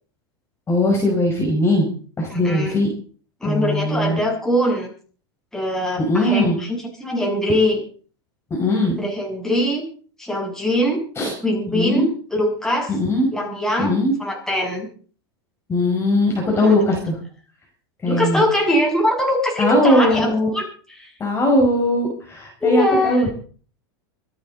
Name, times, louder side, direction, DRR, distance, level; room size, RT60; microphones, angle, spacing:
voice 1, 0.7-1.9 2.2-2.9 3.4-4.2 6.1-6.6 8.6-9.0 11.2-11.3 11.7-12.1 12.9-13.3 13.8-14.1 15.7-17.2 18.0-18.4 19.6-20.5 21.2-23.3, left 1 dB, 20° left, -1 dB, 5.3 m, -19 dB
voice 2, 2.3-2.7 3.4-4.9 5.5-7.8 9.0-9.9 10.2-11.0 11.4-13.0 13.3-14.9 16.4-16.8 18.1-21.1 22.6-23.2, left 1 dB, 5° left, -2 dB, 6.6 m, -22 dB
25.5 x 9.9 x 4.1 m, 0.43 s
supercardioid pair, 125°, 13 cm